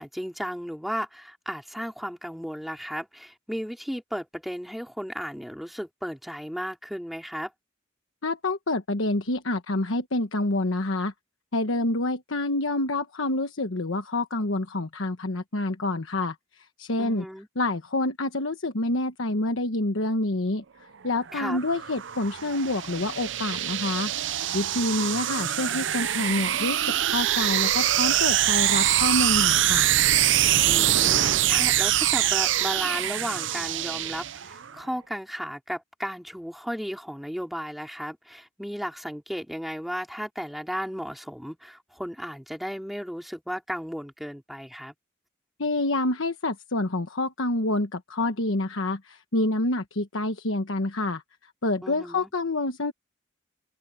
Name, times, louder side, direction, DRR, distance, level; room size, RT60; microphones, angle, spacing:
voice 1, 0.0-7.5 17.0-17.5 21.3-21.6 30.6-44.9 51.8-52.3, equal, ahead, 4.3 m, -34 dB
voice 2, 8.2-11.1 11.5-17.2 17.6-29.9 45.6-52.9, left 2 dB, 90° left, 1.2 m, -27 dB
sound 1, 21.2-34.7, right 12 dB, 70° right, 0.6 m, -24 dB
head